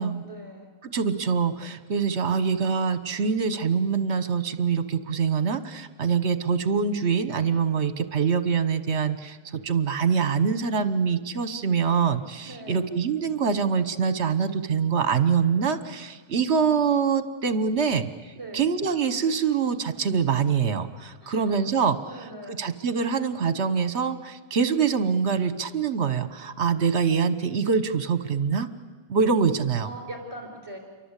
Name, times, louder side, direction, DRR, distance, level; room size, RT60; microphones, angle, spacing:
voice 1, 0.0-0.7 12.5-12.9 18.4-18.7 21.2-21.6 22.1-22.6 29.8-30.8, right 1 dB, 25° right, 2 dB, 5.6 m, -41 dB
voice 2, 0.8-28.7 29.1-29.9, right 6 dB, 55° right, 12 dB, 1.6 m, -25 dB
28.5 x 23.5 x 8.4 m, 1.4 s
omnidirectional pair, 1.5 m